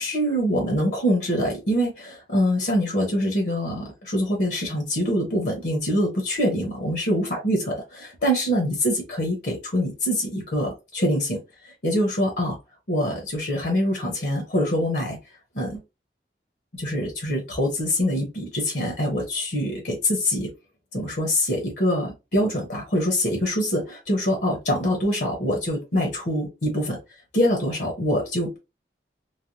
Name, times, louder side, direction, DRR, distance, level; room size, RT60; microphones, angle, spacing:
voice 1, 0.0-12.6 12.9-15.2 15.5-15.8 16.7-20.5 20.9-27.0 27.3-28.6, equal, 65° left, 1 dB, 0.9 m, -24 dB
3.2 x 2.1 x 2.7 m, 0.26 s
head